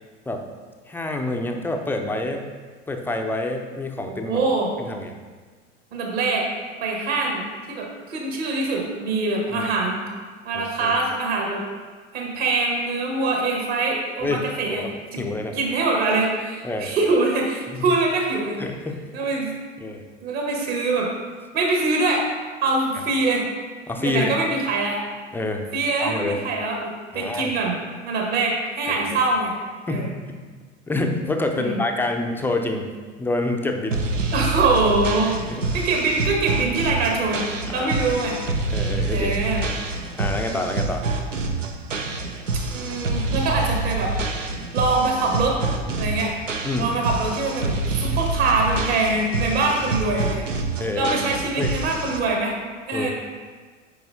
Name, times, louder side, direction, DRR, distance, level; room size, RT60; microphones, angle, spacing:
voice 1, 0.9-2.4 2.9-4.4 4.8-5.1 9.5-9.7 10.5-11.0 14.2-14.9 15.2-15.6 16.6-16.9 17.7-17.9 18.6-19.0 19.8-20.0 23.8-24.3 25.3-26.5 27.1-27.5 28.9-29.2 29.9-30.4 30.9-34.1 35.4-35.7 37.7-38.2 38.7-39.3 40.1-41.0 46.6-46.9 49.8-49.9 50.8-51.1 51.6-51.8 52.9-53.1, left 2 dB, 5° left, 3 dB, 0.4 m, -27 dB
voice 2, 4.1-4.7 5.9-6.4 6.8-10.0 10.4-11.6 12.1-14.8 15.1-15.2 15.5-18.6 19.1-19.5 20.2-21.1 21.5-22.3 22.6-23.4 24.0-25.0 25.7-27.7 28.0-29.5 29.9-30.1 31.5-31.8 34.3-35.3 35.7-37.4 37.7-38.4 39.1-39.7 42.7-44.1 44.7-45.6 46.0-46.3 46.8-50.5 50.9-52.5 52.9-53.1, right 3 dB, 55° right, 0 dB, 1.7 m, -23 dB
sound 1, 33.9-52.2, right 3 dB, 85° right, 0.6 m, -27 dB
9.5 x 4.6 x 2.7 m, 1.4 s
figure-of-eight pair, 80°, 37 cm